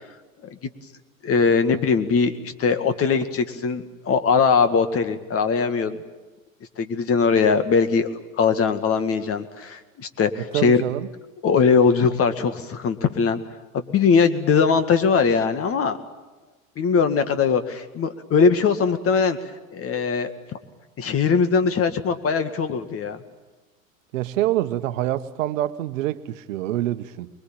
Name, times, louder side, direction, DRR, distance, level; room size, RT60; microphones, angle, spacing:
voice 1, 1.2-6.0 6.8-8.1 8.4-10.8 11.4-13.4 13.7-16.0 16.8-19.4 19.7-20.3 21.0-23.2, left 5 dB, 35° left, 2.1 m, -20 dB
voice 2, 10.4-11.1 24.1-27.3, right 14 dB, 65° right, 1.2 m, -26 dB
24.5 x 21.5 x 9.0 m
hypercardioid pair, 90°, 41 cm